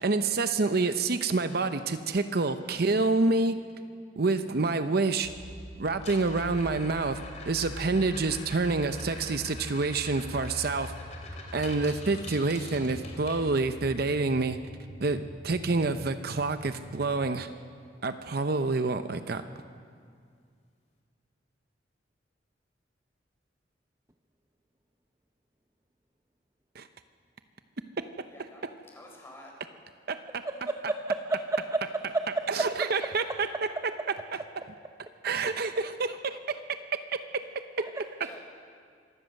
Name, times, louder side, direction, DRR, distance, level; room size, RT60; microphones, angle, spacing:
voice 1, 0.0-3.6 4.2-5.3 5.8-7.2 7.5-10.9 11.5-14.6 15.0-17.5 18.0-19.4 26.7-26.9 30.1-30.4 32.5-33.5 35.2-36.8 37.1-37.4 37.8-37.9, right 3 dB, 55° right, 10 dB, 0.7 m, -27 dB
sound 1, 5.2-17.2, equal, 75° right, 2.3 m, -44 dB
sound 2, 5.9-13.9 16.1-16.2 16.5-16.8 17.2-17.3 17.9-18.0 19.9-20.0, left 3 dB, 40° left, 3.0 m, -46 dB
voice 2, 28.3-29.5 38.2-38.4, left 1 dB, 15° left, -1 dB, 4.4 m, -50 dB
voice 3, 30.4-32.7 37.8-38.0, right 2 dB, 20° right, 4 dB, 0.7 m, -31 dB
25.0 x 16.0 x 6.5 m, 2.2 s
head